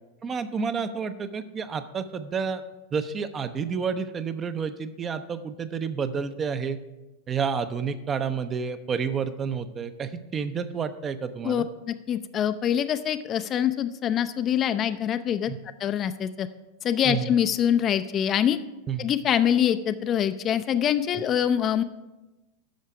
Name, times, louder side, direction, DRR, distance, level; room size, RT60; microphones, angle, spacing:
voice 1, 0.2-2.6 2.9-6.8 7.3-11.7 15.5-15.6 17.0-17.3 18.9-19.1, right 6 dB, 25° right, 11 dB, 0.5 m, -30 dB
voice 2, 11.4-15.5 15.8-16.5 16.8-18.6 19.0-21.8, left 9 dB, 30° left, 11 dB, 0.4 m, -24 dB
10.5 x 6.4 x 4.8 m, 1.0 s
figure-of-eight pair, 90°, 0 cm